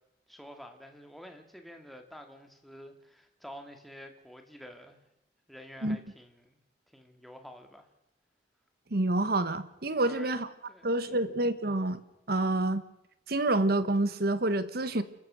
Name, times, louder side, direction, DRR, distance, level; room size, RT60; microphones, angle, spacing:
voice 1, 0.3-5.0 5.5-6.6 6.9-7.9 10.0-10.4 10.7-11.3, equal, ahead, 2.2 m, -49 dB
voice 2, 8.9-10.5 10.8-12.0 12.3-12.8 13.3-15.0, right 2 dB, 60° right, 1.3 m, -28 dB
29.0 x 14.5 x 6.3 m
head